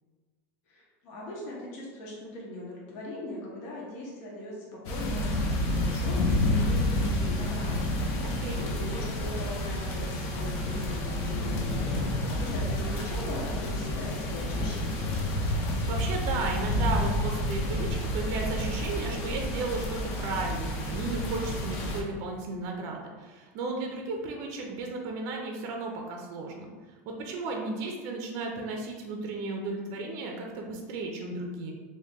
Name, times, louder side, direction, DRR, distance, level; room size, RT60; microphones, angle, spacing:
voice 1, 0.7-15.1, left 1 dB, 65° left, -4 dB, 0.9 m, -40 dB
sound 1, 4.8-22.0, left 1 dB, 45° left, 0.6 m, -29 dB
voice 2, 8.2-8.6 15.9-17.9 18.1-31.7, right 3 dB, 45° right, 1 dB, 0.5 m, -34 dB
2.9 x 2.6 x 3.5 m, 1.4 s
supercardioid pair, 150°, 8 cm